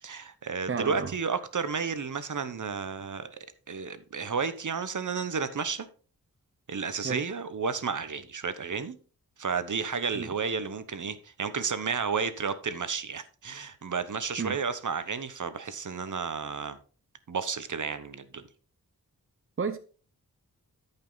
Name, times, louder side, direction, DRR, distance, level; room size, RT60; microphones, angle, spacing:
voice 1, 0.0-3.4 3.7-5.9 6.7-9.0 9.4-16.8 17.3-18.4, right 5 dB, 55° right, 1.0 m, -32 dB
voice 2, 0.7-1.1 7.0-7.3 10.1-10.3 14.4-14.6 19.6-19.8, right 5 dB, 35° right, 0.7 m, -32 dB
13.0 x 5.5 x 4.0 m
wide cardioid pair, 75°, 36 cm